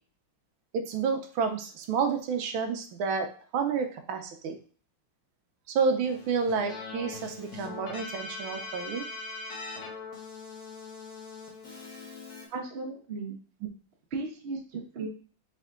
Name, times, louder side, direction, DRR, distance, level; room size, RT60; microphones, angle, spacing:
voice 1, 0.7-4.6 5.7-9.0, right 5 dB, 80° right, 5 dB, 1.5 m, -30 dB
Keyboard (musical), 6.0-12.5, left 3 dB, 50° left, 1.5 m, -41 dB
voice 2, 12.5-13.4 14.1-15.1, right 3 dB, 40° right, 0 dB, 1.0 m, -36 dB
4.4 x 3.3 x 3.6 m, 0.40 s
omnidirectional pair, 2.3 m